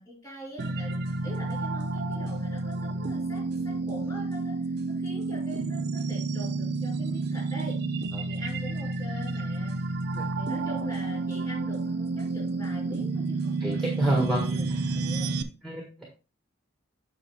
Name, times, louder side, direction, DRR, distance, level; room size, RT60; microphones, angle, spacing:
voice 1, 0.0-7.8 8.3-9.8 10.4-15.3, right 1 dB, 20° left, -4 dB, 4.8 m, -43 dB
sound 1, 0.6-15.4, right 3 dB, 50° right, 0.7 m, -30 dB
voice 2, 13.6-14.9 15.4-16.0, right 1 dB, ahead, -1 dB, 1.4 m, -29 dB
8.4 x 5.7 x 3.5 m, 0.33 s
head